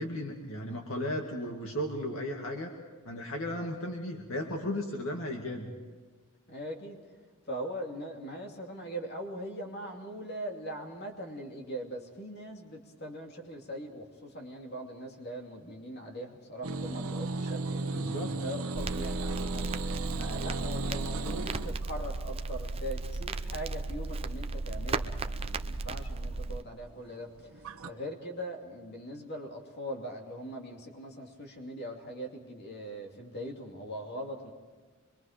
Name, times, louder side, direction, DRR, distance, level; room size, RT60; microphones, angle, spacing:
voice 1, 0.0-2.7 3.0-5.7 17.9-18.3, left 1 dB, 65° left, 1 dB, 2.2 m, -35 dB
voice 2, 6.5-7.0 7.5-18.1 18.4-19.6 20.1-34.5, equal, 50° left, 1 dB, 2.7 m, -41 dB
sound 1, 16.6-27.9, right 3 dB, 85° right, 1.2 m, -37 dB
Crackle, 18.7-26.6, right 3 dB, 25° right, 0.6 m, -35 dB
25.0 x 23.0 x 5.1 m, 1.4 s
head